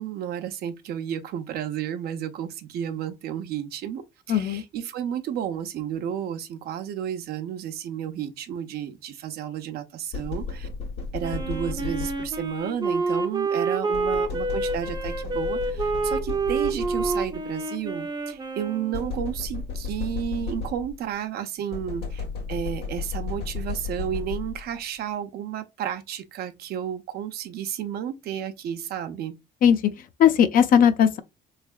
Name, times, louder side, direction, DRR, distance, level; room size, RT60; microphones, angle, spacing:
voice 1, 0.0-10.7 11.1-29.3, right 9 dB, 65° right, 0.7 m, -32 dB
voice 2, 4.3-4.6 29.6-29.9 30.2-31.2, left 8 dB, 55° left, 0.5 m, -18 dB
sound 1, 10.1-12.6 13.9-17.5 18.9-21.1 21.7-24.8, left 5 dB, 75° left, 1.3 m, -34 dB
Wind instrument woodwind instrument, 11.2-19.3, right 3 dB, 25° right, 0.6 m, -28 dB
3.5 x 3.2 x 2.3 m
cardioid pair, 110°, 17 cm